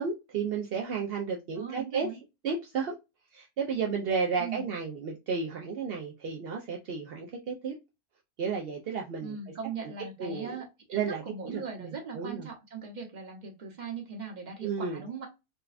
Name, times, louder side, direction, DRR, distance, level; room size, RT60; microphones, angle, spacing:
voice 1, 0.0-2.1 2.4-3.0 3.3-7.7 8.4-9.4 10.2-10.6 10.9-12.5 14.6-15.0, right 5 dB, 60° right, 0.6 m, -32 dB
voice 2, 1.5-2.2 4.4-4.6 9.2-15.3, right 5 dB, 35° right, 1.0 m, -39 dB
4.0 x 2.3 x 2.4 m
omnidirectional pair, 1.6 m